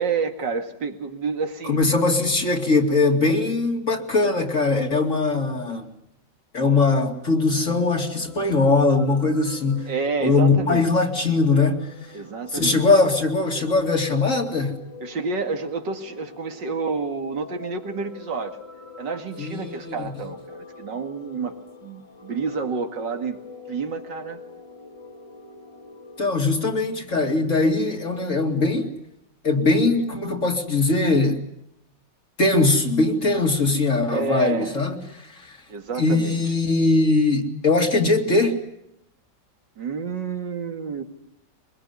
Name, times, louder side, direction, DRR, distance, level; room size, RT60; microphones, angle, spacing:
voice 1, 0.0-1.8 9.9-10.9 12.1-12.9 15.0-18.5 19.0-21.5 21.8-23.4 23.7-24.4 34.1-34.7 35.7-36.4 39.8-41.0, right 5 dB, 85° right, 6 dB, 2.7 m, -29 dB
voice 2, 1.7-5.9 6.5-9.9 10.2-11.9 12.5-14.8 19.4-20.1 26.2-28.9 29.4-31.4 32.4-35.6 36.0-38.7, left 3 dB, 45° left, 2 dB, 2.8 m, -21 dB
sound 1, 7.4-26.7, left 4 dB, 80° left, 4.6 m, -44 dB
24.0 x 21.5 x 9.6 m, 0.80 s
omnidirectional pair, 1.9 m